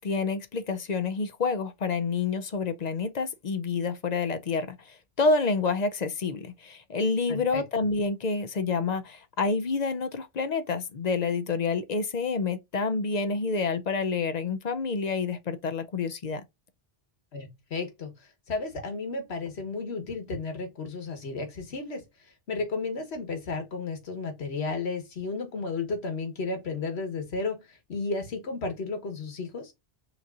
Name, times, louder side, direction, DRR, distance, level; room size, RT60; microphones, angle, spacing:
voice 1, 0.0-16.4, left 4 dB, 50° left, 0.6 m, -28 dB
voice 2, 7.3-7.6 17.3-29.7, left 3 dB, 90° left, 1.5 m, -33 dB
5.8 x 2.9 x 2.4 m
omnidirectional pair, 1.0 m